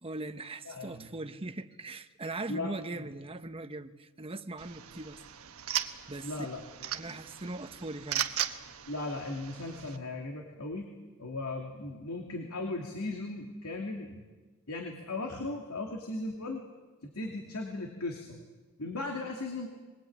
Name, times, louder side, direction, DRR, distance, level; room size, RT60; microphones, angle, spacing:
voice 1, 0.0-5.2 6.1-6.5 6.9-8.3, right 2 dB, 25° right, 1.0 m, -40 dB
voice 2, 0.6-1.1 2.5-3.1 6.2-6.6 7.0-7.2 8.9-10.9 11.2-14.2 14.7-16.6 17.0-18.4 18.8-19.7, left 2 dB, 85° left, 2.8 m, -37 dB
sound 1, 4.6-10.0, right 10 dB, 70° right, 1.2 m, -37 dB
22.0 x 21.5 x 8.7 m
head